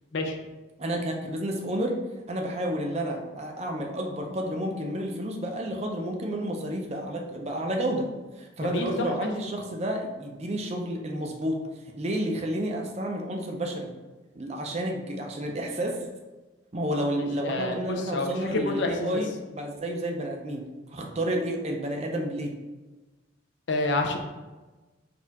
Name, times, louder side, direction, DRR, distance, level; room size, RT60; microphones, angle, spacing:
voice 1, 0.8-2.0 2.3-8.1 8.4-11.6 12.0-13.9 14.4-16.0 16.7-22.6, right 1 dB, 35° right, 2 dB, 0.5 m, -30 dB
voice 2, 8.6-9.3 17.4-19.2 23.7-24.2, left 2 dB, 65° left, 3 dB, 0.5 m, -28 dB
4.2 x 2.4 x 4.0 m, 1.2 s
head